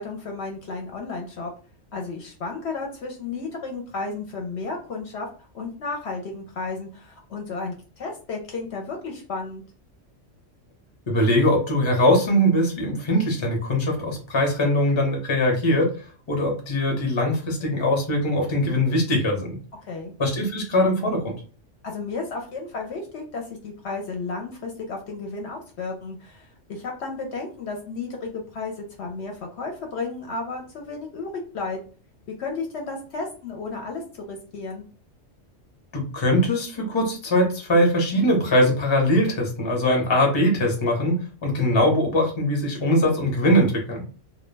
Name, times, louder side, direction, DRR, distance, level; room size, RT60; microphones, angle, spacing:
voice 1, 0.0-1.5 1.9-9.6 19.9-20.1 21.8-31.3 31.5-31.8 32.3-34.8, left 3 dB, 65° left, 1 dB, 0.8 m, -33 dB
voice 2, 11.1-15.9 16.3-19.6 20.2-21.3 35.9-44.0, left 1 dB, 30° left, 1 dB, 0.6 m, -21 dB
2.2 x 2.1 x 3.2 m, 0.38 s
omnidirectional pair, 1.3 m